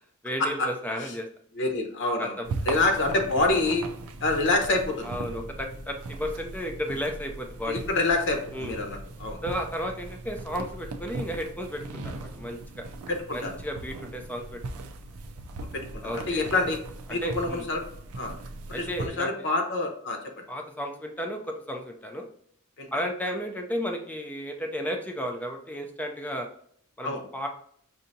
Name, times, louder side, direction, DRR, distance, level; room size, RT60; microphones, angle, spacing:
voice 1, 0.2-1.3 2.2-2.5 2.7-2.8 3.5-3.6 5.0-7.8 8.5-8.8 9.4-12.9 13.3-14.6 16.0-16.4 17.2-17.7 18.7-19.3 20.5-21.4 21.7-22.2 22.9-26.5 27.0-27.5, equal, 5° left, 3 dB, 0.5 m, -33 dB
voice 2, 1.5-2.4 2.7-3.8 4.2-5.2 7.7-9.4 13.1-13.5 15.9-16.8 17.1-17.8 18.1-18.4 18.7-20.2 22.8-22.9 27.0-27.2, left 2 dB, 60° left, 3 dB, 0.9 m, -27 dB
sound 1, 2.4-19.1, right 3 dB, 80° right, 0.5 m, -39 dB
5.5 x 2.7 x 2.6 m, 0.63 s
head